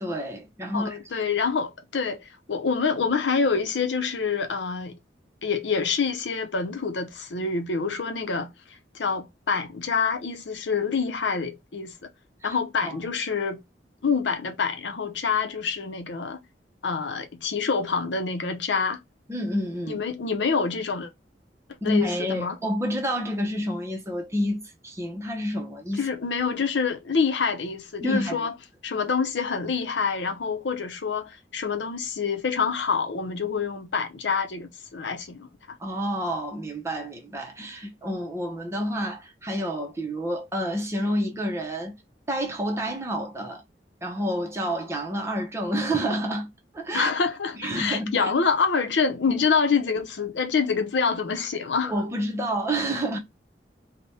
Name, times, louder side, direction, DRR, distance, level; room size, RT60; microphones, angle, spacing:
voice 1, 0.0-1.3 12.4-13.0 19.3-20.0 21.8-26.1 28.0-28.5 35.8-42.0 42.3-43.6 44.0-47.1 47.5-48.3 49.3-49.4 51.8-53.2, equal, 15° right, 0.6 m, -29 dB
voice 2, 0.7-5.0 5.4-8.5 8.9-11.9 12.4-13.6 14.0-16.4 16.8-19.0 19.9-21.1 21.8-22.6 26.0-28.5 28.8-35.8 46.9-51.9, left 5 dB, 85° left, 0.6 m, -26 dB
3.4 x 2.1 x 4.1 m
head